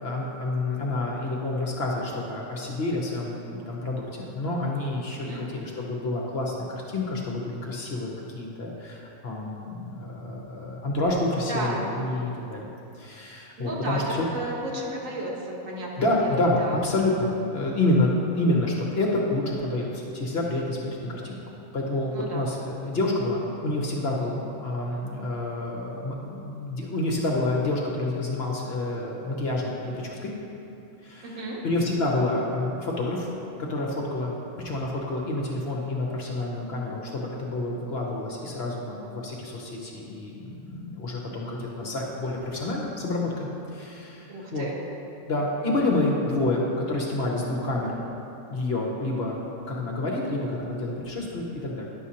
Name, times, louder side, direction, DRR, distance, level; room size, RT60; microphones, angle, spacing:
voice 1, 0.0-12.7 13.0-14.3 16.0-21.4 21.7-30.3 31.0-33.3 33.6-34.3 34.6-44.7 45.2-47.9 48.5-49.4 49.7-51.9, left 2 dB, 55° left, -2 dB, 0.9 m, -28 dB
voice 2, 5.1-5.5 11.5-11.9 13.6-16.8 22.1-22.5 31.2-31.6 41.7-41.9 44.3-44.8, right 1 dB, 70° right, -3 dB, 1.4 m, -33 dB
10.0 x 6.2 x 2.8 m, 2.9 s
omnidirectional pair, 1.5 m